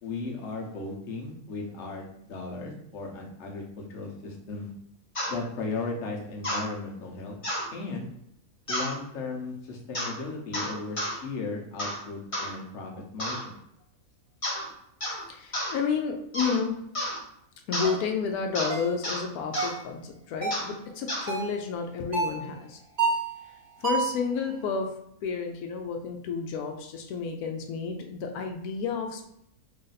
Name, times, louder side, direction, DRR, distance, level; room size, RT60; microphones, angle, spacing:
voice 1, 0.0-4.7 5.3-7.4 7.7-8.1 8.7-13.4, left 3 dB, 60° left, 0 dB, 1.1 m, -36 dB
sound 1, 5.2-5.3 6.4-6.7 7.4-7.7 8.7-8.9 9.9-10.2 10.5-11.2 11.8-12.0 12.3-12.5 13.2-13.5 14.4-14.7 15.0-15.2 15.5-15.7 16.3-16.6 17.0-17.2 17.7-17.9 18.6-18.7 19.0-19.2 19.5-19.7 20.5-20.7 21.1-21.3, equal, 25° left, 0.9 m, -31 dB
voice 2, 15.3-16.8 17.7-22.8 23.8-24.9 25.2-29.2, left 5 dB, 85° left, 4 dB, 1.1 m, -31 dB
sound 2, 17.8-18.0 18.7-19.0 19.6-19.8 20.4-20.7 21.3-21.6 22.1-22.4 23.0-23.3 23.8-24.2, right 4 dB, 50° right, 1.1 m, -29 dB
3.2 x 2.5 x 3.9 m, 0.75 s
omnidirectional pair, 1.5 m